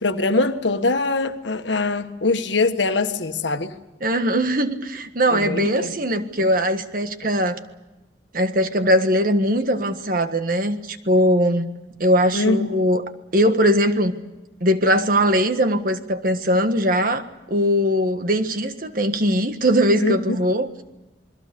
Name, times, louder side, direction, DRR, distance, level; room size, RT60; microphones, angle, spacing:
voice 1, 0.0-3.8 5.3-5.9 12.3-12.7 20.0-20.4, left 3 dB, 80° left, 1.5 m, -22 dB
voice 2, 4.0-7.6 8.3-11.7 12.0-13.0 13.3-14.1 14.6-17.2 17.5-20.7, equal, 50° right, 1.6 m, -20 dB
28.0 x 21.5 x 6.9 m
head